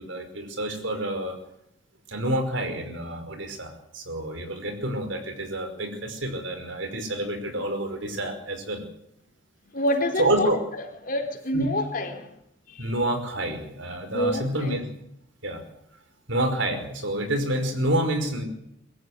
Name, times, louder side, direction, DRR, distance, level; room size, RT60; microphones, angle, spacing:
voice 1, 0.0-1.4 2.1-8.8 10.2-10.6 11.5-11.7 12.8-14.8 15.4-15.6 16.3-18.4, right 1 dB, 65° right, 5.3 m, -28 dB
voice 2, 9.7-10.6 11.0-12.3 12.7-12.9 14.1-14.8, left 1 dB, 45° left, 4.2 m, -27 dB
24.0 x 14.0 x 9.7 m
head